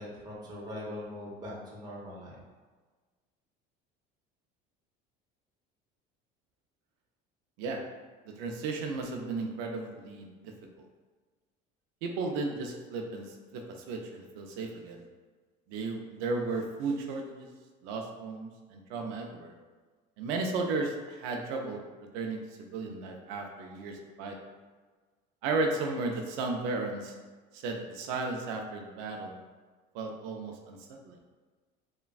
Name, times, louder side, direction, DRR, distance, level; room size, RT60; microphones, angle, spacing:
voice 1, 0.0-2.4, left 1 dB, 20° right, -4 dB, 0.7 m, -41 dB
voice 2, 8.3-10.3 12.0-15.0 15.7-17.5 17.8-19.5 20.2-21.8 22.1-24.4 25.4-27.1 27.5-29.4 29.9-30.8 31.0-31.2, right 3 dB, 85° right, 2 dB, 0.4 m, -34 dB
3.2 x 2.1 x 2.3 m, 1.4 s
cardioid pair, 140°, 20 cm